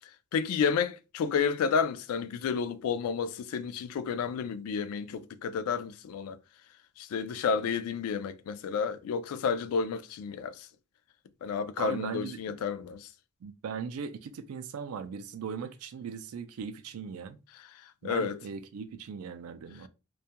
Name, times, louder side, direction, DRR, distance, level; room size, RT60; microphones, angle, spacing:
voice 1, 0.3-6.4 7.0-10.7 11.4-13.1 18.0-18.4, left 6 dB, 85° left, 0.3 m, -31 dB
voice 2, 11.8-12.6 13.4-17.4 18.0-19.9, right 6 dB, 80° right, 0.4 m, -39 dB
2.2 x 2.2 x 2.8 m
head